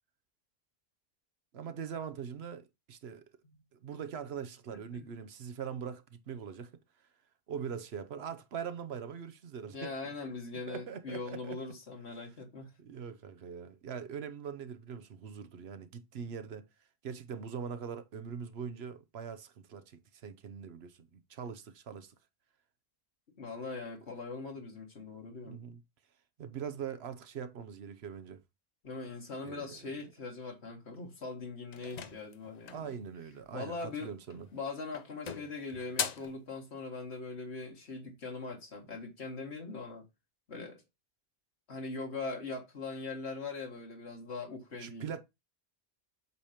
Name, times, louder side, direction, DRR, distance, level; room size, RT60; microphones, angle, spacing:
voice 1, 1.5-3.2 3.7-6.7 7.5-10.1 10.5-11.6 12.8-16.6 17.0-22.1 25.5-25.8 26.4-28.4 29.4-29.9 32.7-34.5 44.8-45.2, right 7 dB, 80° right, 1.0 m, -42 dB
voice 2, 9.7-12.7 23.4-25.6 28.8-32.9 33.5-34.2 34.5-40.0 40.5-40.8 41.7-45.1, left 3 dB, 90° left, 1.9 m, -41 dB
sound 1, 31.7-32.9 34.2-34.6 34.9-36.4, left 7 dB, 50° left, 0.6 m, -39 dB
8.1 x 2.9 x 4.9 m
omnidirectional pair, 1.1 m